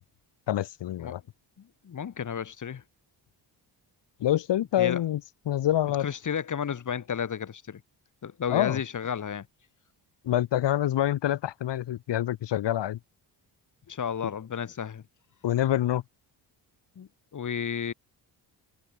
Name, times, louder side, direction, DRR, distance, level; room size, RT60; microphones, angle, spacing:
voice 1, 0.5-1.2 4.2-5.2 5.5-6.1 8.5-8.8 10.2-13.0 15.4-16.0, left 12 dB, 70° left, 1.2 m, -26 dB
voice 2, 1.6-2.8 4.8-5.0 6.0-7.8 8.2-9.5 13.9-15.0 17.0-17.9, left 7 dB, 45° left, 1.4 m, -32 dB
cardioid pair, 100°, 43 cm